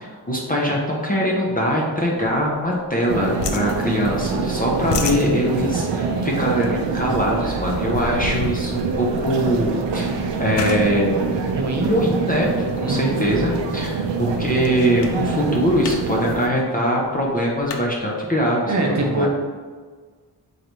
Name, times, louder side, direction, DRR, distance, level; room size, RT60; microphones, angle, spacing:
voice 1, 0.0-11.3 11.8-19.3, equal, 20° left, -3 dB, 0.4 m, -22 dB
sound 1, 2.2-3.1 3.4-4.4 4.7-12.5 13.1-13.4 13.8-13.9 14.1-14.7 15.0-15.2 15.5-16.0 16.3-16.4 16.6-17.8, left 4 dB, 75° left, 0.5 m, -33 dB
sound 2, 3.1-16.5, right 4 dB, 85° right, 0.6 m, -25 dB
voice 2, 11.5-11.9 12.8-13.1 18.7-19.3, right 2 dB, 45° right, 1 dB, 0.5 m, -23 dB
3.9 x 3.3 x 3.0 m, 1.5 s
wide cardioid pair, 180°, 42 cm